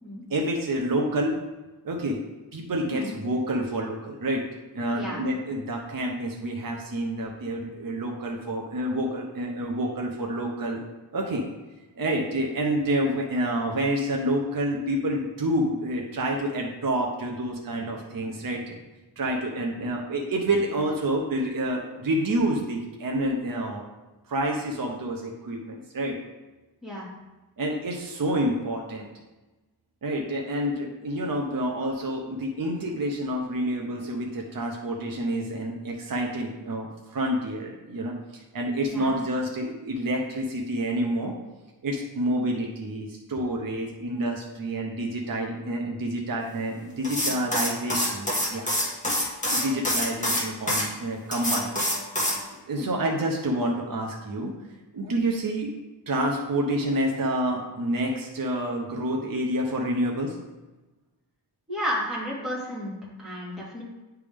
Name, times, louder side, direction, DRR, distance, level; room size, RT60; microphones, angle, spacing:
voice 1, 0.3-1.4 1.8-2.2 2.5-4.4 4.7-10.8 11.1-11.4 12.0-18.8 19.2-23.8 24.3-26.2 27.6-29.1 30.0-41.3 41.8-48.7 49.5-51.7 52.7-54.5 54.9-55.7 56.1-60.4, right 1 dB, 50° right, 0 dB, 0.8 m, -28 dB
voice 2, 38.9-39.2 52.8-53.0 61.7-63.8, equal, ahead, -6 dB, 2.0 m, -32 dB
sound 1, 47.0-50.8 51.3-52.4, left 1 dB, 15° left, 1.4 m, -26 dB
9.6 x 3.5 x 3.5 m, 1.1 s
wide cardioid pair, 100°, 43 cm